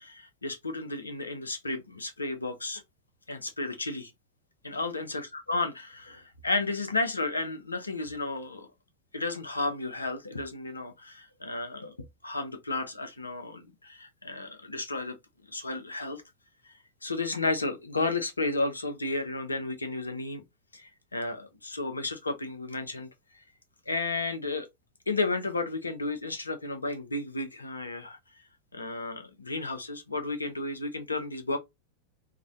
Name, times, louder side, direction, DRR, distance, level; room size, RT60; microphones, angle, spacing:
voice 1, 0.0-2.8 3.3-4.1 4.6-8.7 9.1-12.0 12.2-15.2 15.5-16.2 16.6-16.7 17.0-20.4 20.7-23.1 23.3-23.4 23.9-24.7 25.1-28.2 28.7-31.6, left 3 dB, 80° left, 0.5 m, -33 dB
2.4 x 2.1 x 2.4 m
figure-of-eight pair, 90°, 0 cm